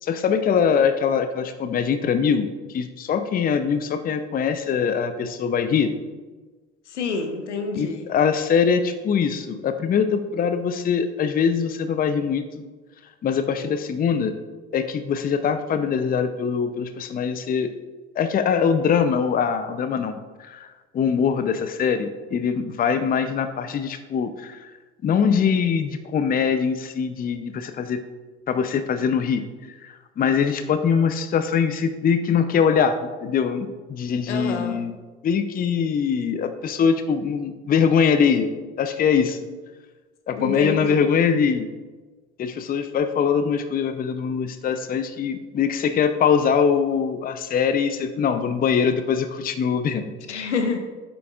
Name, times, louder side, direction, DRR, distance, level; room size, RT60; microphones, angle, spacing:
voice 1, 0.0-5.9 7.7-12.6 13.2-14.3 14.7-17.7 18.2-20.7 20.9-24.7 25.0-28.0 28.5-29.4 29.8-34.9 35.2-38.5 38.8-39.4 40.3-41.7 42.4-50.1, left 6 dB, 25° left, 9 dB, 0.6 m, -22 dB
voice 2, 6.9-8.1 34.3-34.8 40.4-41.0 50.3-50.8, left 4 dB, 80° left, 5 dB, 1.0 m, -28 dB
10.5 x 8.4 x 2.4 m, 1.3 s
figure-of-eight pair, 60°, 34 cm